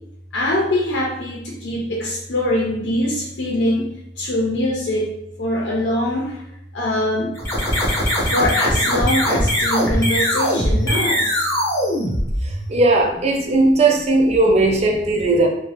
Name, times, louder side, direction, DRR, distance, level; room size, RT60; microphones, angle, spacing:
voice 1, 0.3-5.1 5.4-6.4 6.7-7.3 8.3-11.5 13.5-13.8, left 1 dB, 80° left, -2 dB, 0.5 m, -23 dB
sound 1, 7.4-12.8, equal, 15° left, 0.7 m, -20 dB
voice 2, 12.7-15.5, right 2 dB, 35° right, 3 dB, 0.4 m, -17 dB
2.5 x 2.1 x 3.2 m, 0.79 s
head